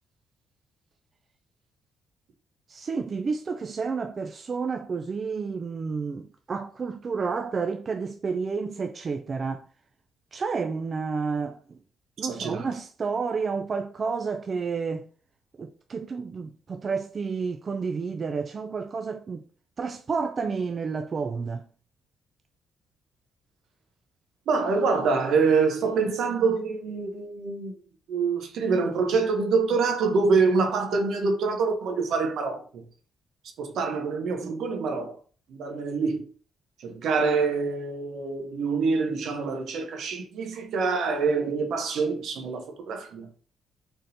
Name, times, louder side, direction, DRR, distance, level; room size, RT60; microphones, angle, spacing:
voice 1, 2.7-9.7 10.3-11.8 12.2-15.1 15.6-19.4 19.8-21.7, right 5 dB, 40° right, 0.3 m, -30 dB
voice 2, 12.3-12.7 24.5-27.7 28.1-32.8 33.6-35.2 35.5-36.3 36.8-43.3, right 4 dB, 70° right, 0.9 m, -25 dB
4.1 x 3.6 x 2.7 m
cardioid pair, 90°, 0 cm